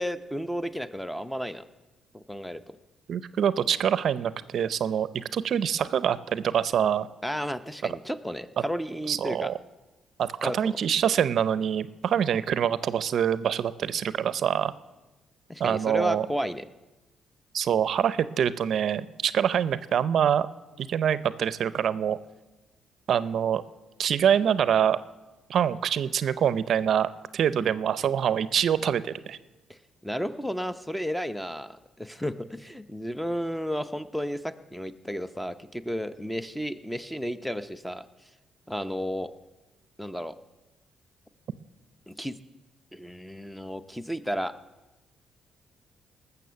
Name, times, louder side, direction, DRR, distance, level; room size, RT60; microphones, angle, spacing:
voice 1, 0.0-1.6 2.1-2.8 7.2-9.5 10.4-10.8 15.5-16.7 27.6-27.7 29.7-29.8 30.0-38.1 38.7-39.3 40.0-40.4 42.1-42.3 42.9-44.5, equal, 5° left, 12 dB, 0.7 m, -33 dB
voice 2, 3.1-7.1 9.1-9.5 10.2-14.7 15.6-16.3 17.5-20.5 20.8-22.2 23.1-23.6 24.0-25.0 25.5-29.4, right 8 dB, 65° right, 16 dB, 0.5 m, -25 dB
18.5 x 6.9 x 6.9 m, 1.1 s
cardioid pair, 90°, 0 cm